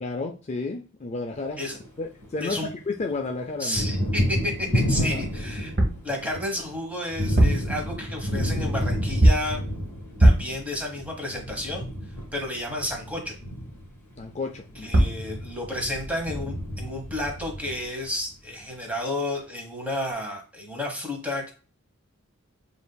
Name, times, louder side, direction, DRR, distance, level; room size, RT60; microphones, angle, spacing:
voice 1, 0.0-1.7 2.0-3.8 5.0-5.2 14.2-15.1, left 3 dB, 30° left, 3 dB, 0.4 m, -32 dB
Thunder, 1.5-2.7 3.0-18.2, equal, 10° left, 1.9 m, -30 dB
voice 2, 3.6-5.7 6.0-9.6 10.2-11.8 12.3-13.4 14.8-21.5, left 1 dB, 5° right, 1 dB, 1.0 m, -31 dB
sound 1, 5.8-6.1 7.2-7.8 9.2-9.6 10.2-10.6 14.6-14.7 14.9-15.3, right 1 dB, 50° right, 0.9 m, -19 dB
7.1 x 2.6 x 2.2 m, 0.38 s
head